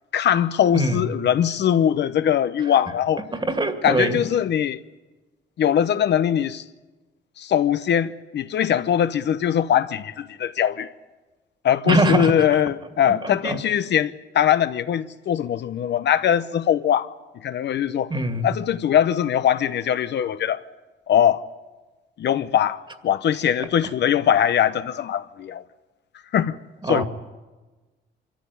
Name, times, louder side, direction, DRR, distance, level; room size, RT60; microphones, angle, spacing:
voice 1, 0.1-3.2 3.8-4.8 5.6-6.6 7.4-10.9 11.6-17.1 17.4-18.1 18.4-20.6 21.1-21.4 22.2-25.6 26.3-26.6 26.9-27.0, left 9 dB, 60° left, 0.8 m, -21 dB
voice 2, 0.7-1.1 2.6-2.7 3.3-4.2 11.9-12.6 13.1-13.6 18.1-18.5 23.6-23.7 26.8-27.0, right 1 dB, 25° right, 2.3 m, -23 dB
24.5 x 14.0 x 9.7 m
cardioid pair, 90°, 20 cm